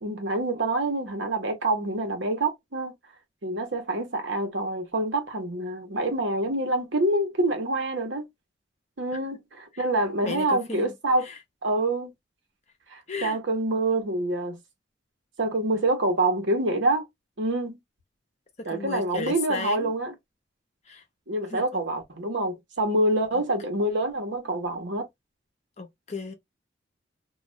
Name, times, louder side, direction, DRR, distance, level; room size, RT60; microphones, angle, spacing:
voice 1, 0.0-2.9 3.4-8.3 9.0-11.2 11.6-12.1 12.9-14.6 15.4-17.1 17.4-17.8 18.7-20.1 21.3-25.1, right 2 dB, 80° right, 1.0 m, -26 dB
voice 2, 10.2-10.9 11.2-11.4 13.1-13.4 18.6-19.9 20.9-21.0 21.5-21.8 23.3-23.4 25.8-26.3, left 3 dB, 35° left, 0.7 m, -35 dB
2.4 x 2.4 x 3.1 m
head